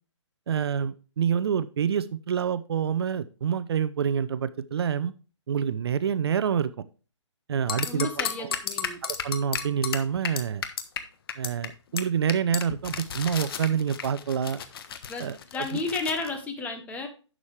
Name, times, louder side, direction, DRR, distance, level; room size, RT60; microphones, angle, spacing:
voice 1, 0.5-5.1 5.5-6.7 7.5-8.6 9.0-10.6 11.4-14.6 15.2-15.8, right 8 dB, 55° right, 15 dB, 0.6 m, -27 dB
sound 1, 7.7-11.0 11.3-11.7 12.0-12.1 12.3-16.3, left 8 dB, 50° left, 1.2 m, -33 dB
voice 2, 7.8-9.0 15.1-15.3 15.5-17.1, left 3 dB, 10° left, 5 dB, 1.2 m, -32 dB
11.0 x 7.3 x 3.3 m, 0.36 s
hypercardioid pair, 150°, 16 cm